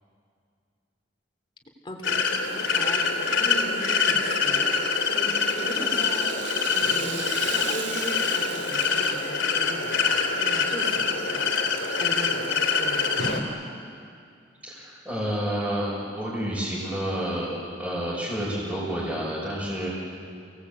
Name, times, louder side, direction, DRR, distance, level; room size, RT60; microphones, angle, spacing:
voice 1, 1.8-2.5 2.7-3.0 3.3-4.7 5.1-11.5 12.0-13.6, equal, 25° left, 2 dB, 3.6 m, -38 dB
sound 1, 2.0-13.4, left 5 dB, 85° left, 3.2 m, -25 dB
Rattle (instrument), 4.9-10.2 10.5-10.6 11.4-11.5, right 5 dB, 75° right, 2.9 m, -38 dB
voice 2, 14.6-19.9, equal, 10° right, -9 dB, 6.0 m, -29 dB
30.0 x 19.0 x 8.6 m, 2.4 s
head